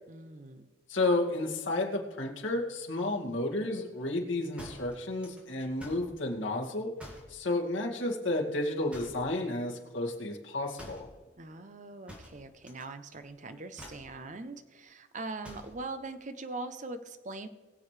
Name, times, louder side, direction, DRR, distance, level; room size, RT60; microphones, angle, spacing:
voice 1, 0.1-0.7 11.4-17.5, right 3 dB, 40° right, 9 dB, 0.7 m, -42 dB
voice 2, 0.9-6.9 7.3-11.1, left 2 dB, 80° left, -1 dB, 2.3 m, -31 dB
sound 1, 4.6-6.1 7.0-7.4 8.9-9.3 10.8-11.1 12.1-12.8 13.1-13.4 13.7-14.1 15.4-15.8, equal, 5° right, 2.3 m, -48 dB
21.5 x 7.7 x 3.3 m, 1.4 s
head